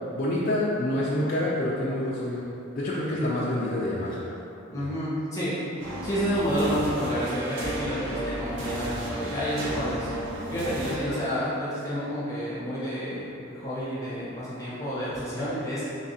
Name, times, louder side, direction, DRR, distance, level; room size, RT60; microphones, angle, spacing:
voice 1, 0.1-2.5 2.8-4.3 4.7-4.9, left 1 dB, 40° left, -8 dB, 0.4 m, -27 dB
voice 2, 4.7-5.5 6.0-10.1 10.5-15.8, equal, 15° left, -10 dB, 0.9 m, -30 dB
sound 1, 5.8-11.0, right 1 dB, 65° right, 0.8 m, -33 dB
3.4 x 2.4 x 4.0 m, 2.8 s
head